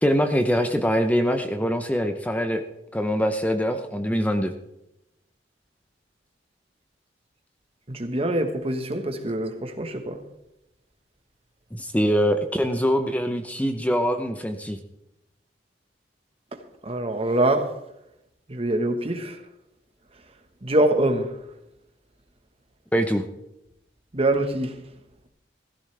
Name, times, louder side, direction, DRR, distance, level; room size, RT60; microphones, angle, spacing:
voice 1, 0.0-2.6 2.9-4.5 11.7-14.8 22.9-23.2, equal, 10° left, 0.7 m, -23 dB
voice 2, 7.9-10.2 16.8-17.7 18.5-19.4 20.6-21.3 24.1-24.7, right 1 dB, 35° right, 1.3 m, -24 dB
16.5 x 14.5 x 3.4 m
head